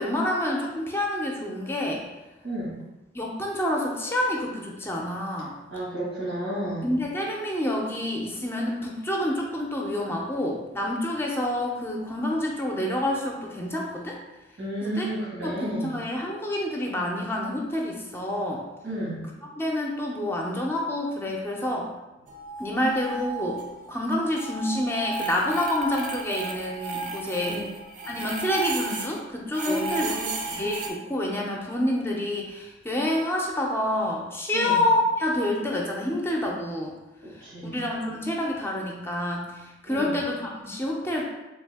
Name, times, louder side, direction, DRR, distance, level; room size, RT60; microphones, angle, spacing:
voice 1, 0.0-2.0 3.1-5.5 6.8-14.2 14.8-15.1 15.4-18.6 19.6-21.9 22.6-23.6 23.9-27.6 28.1-30.3 30.5-36.9 37.3-41.2, left 1 dB, 15° left, -1 dB, 0.5 m, -28 dB
voice 2, 2.4-2.8 5.7-7.0 14.6-16.0 18.8-19.3 27.5-27.7 29.6-30.6 34.5-34.8 37.2-37.8 39.9-40.2, right 1 dB, 90° right, -5 dB, 1.5 m, -32 dB
sound 1, 22.3-23.9 24.1-29.2 29.5-30.9, right 3 dB, 45° right, 0.5 m, -34 dB
3.4 x 2.7 x 3.4 m, 1.0 s
head